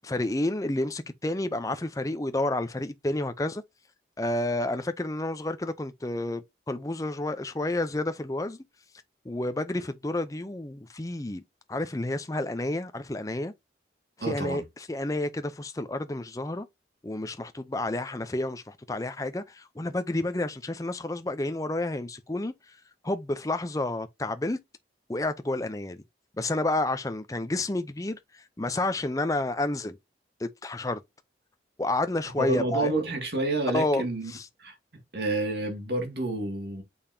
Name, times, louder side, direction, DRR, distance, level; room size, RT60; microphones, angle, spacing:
voice 1, 0.0-3.6 4.2-8.6 9.3-11.4 11.7-13.5 14.2-14.6 14.9-16.7 17.0-22.5 23.0-24.6 25.1-26.0 26.4-30.0 30.4-31.0 31.8-32.9 33.7-34.0 34.3-34.4, left 2 dB, 20° left, 0.5 m, -30 dB
voice 2, 14.2-14.6 32.4-34.3 34.6-34.8 35.1-36.8, right 2 dB, 60° right, 2.1 m, -29 dB
6.7 x 5.4 x 2.7 m
head